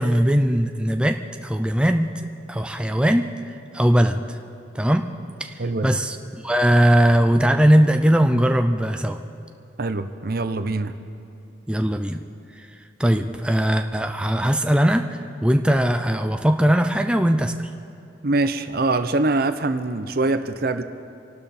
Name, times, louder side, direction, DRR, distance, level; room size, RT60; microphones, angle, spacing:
voice 1, 0.0-2.2 2.5-3.3 3.7-4.4 4.7-5.1 5.4-9.2 11.7-12.2 12.6-17.7, equal, 5° right, 5 dB, 0.5 m, -20 dB
voice 2, 5.6-6.0 9.8-10.9 18.2-20.8, right 2 dB, 55° right, 10 dB, 0.7 m, -23 dB
27.0 x 12.0 x 4.3 m, 2.7 s
head